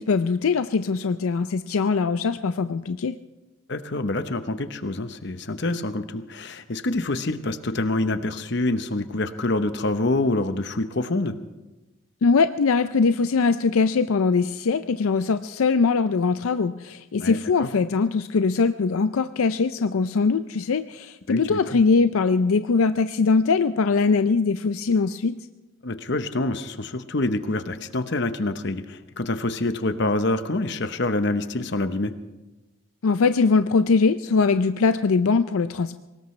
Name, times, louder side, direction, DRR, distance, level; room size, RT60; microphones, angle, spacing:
voice 1, 0.0-3.2 12.2-25.4 33.0-36.0, left 4 dB, 80° left, 11 dB, 0.5 m, -21 dB
voice 2, 3.7-11.3 17.2-17.7 21.3-21.8 25.8-32.1, left 2 dB, 55° left, 10 dB, 0.9 m, -26 dB
23.5 x 19.0 x 3.2 m, 1.1 s
head